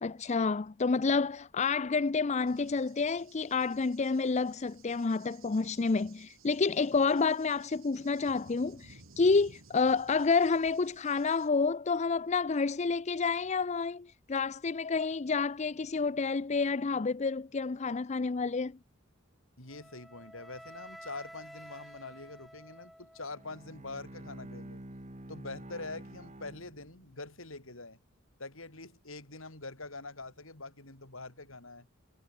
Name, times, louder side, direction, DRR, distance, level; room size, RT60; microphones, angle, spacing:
voice 1, 0.0-18.8, left 4 dB, 35° left, 0.5 m, -29 dB
Cricket / Thunder, 2.5-11.5, right 4 dB, 70° right, 3.0 m, -58 dB
voice 2, 19.6-24.8 25.3-28.0 28.4-31.9, left 3 dB, 70° left, 5.9 m, -44 dB
Wind instrument woodwind instrument, 19.7-23.7, equal, ahead, 1.5 m, -51 dB
Bowed string instrument, 23.2-27.3, right 1 dB, 35° right, 2.2 m, -48 dB
head